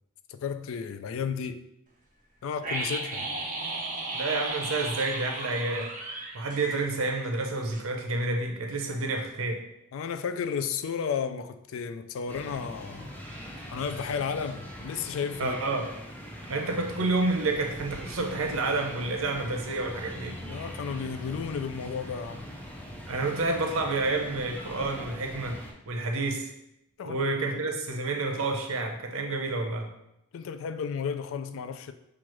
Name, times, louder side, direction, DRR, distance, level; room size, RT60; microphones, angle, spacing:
voice 1, 0.3-1.6 2.4-3.3 9.9-13.1 13.7-15.6 20.4-22.4 27.0-27.6 30.3-31.9, left 6 dB, 70° left, 0.3 m, -33 dB
sound 1, 2.6-7.4 7.7-7.8, right 2 dB, 40° right, 0.7 m, -35 dB
voice 2, 4.1-5.9 6.3-9.6 15.4-15.9 16.5-20.4 23.1-25.6 25.9-26.5 27.0-29.9, right 3 dB, 75° right, 0.7 m, -29 dB
sound 2, 12.3-25.7, equal, 10° left, 0.5 m, -42 dB
5.9 x 2.4 x 3.0 m
head